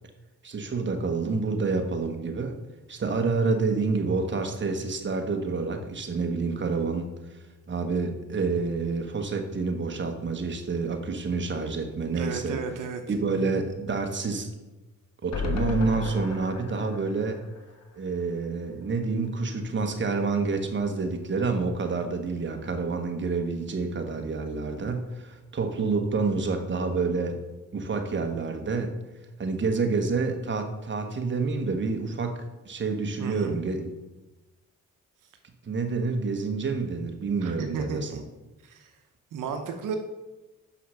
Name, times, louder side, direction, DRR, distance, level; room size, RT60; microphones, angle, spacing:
voice 1, 0.4-2.6 2.9-7.1 7.7-12.6 13.1-14.5 15.2-17.4 18.0-27.4 27.7-29.0 29.4-33.9 35.6-38.2, right 4 dB, 35° right, 4 dB, 1.2 m, -28 dB
voice 2, 12.2-13.0 33.2-33.6 37.4-38.2 38.6-38.9 39.3-40.0, right 5 dB, 85° right, 5 dB, 0.8 m, -33 dB
sound 1, 15.3-18.6 18.9-19.0 19.3-19.4, left 3 dB, 55° left, 1.3 m, -34 dB
6.2 x 5.7 x 5.6 m, 1.1 s
cardioid pair, 75°, 31 cm